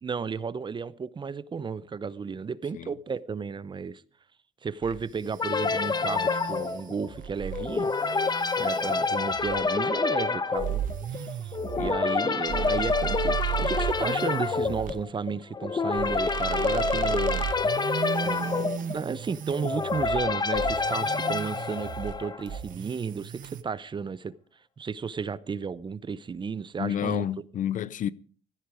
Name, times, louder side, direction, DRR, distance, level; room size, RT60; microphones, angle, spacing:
voice 1, 0.0-4.0 4.6-7.9 8.6-10.8 11.1-17.4 17.7-17.8 18.2-24.3 24.8-27.3, right 5 dB, 30° right, 0.8 m, -33 dB
sound 1, 4.8-9.7 10.6-15.0 15.9-20.3 20.5-22.2 22.5-23.6, right 10 dB, 50° right, 1.1 m, -35 dB
sound 2, 5.4-22.6, left 4 dB, 25° left, 1.1 m, -28 dB
voice 2, 26.8-28.1, left 9 dB, 50° left, 0.6 m, -30 dB
16.5 x 14.0 x 4.9 m
cardioid pair, 110°, 17 cm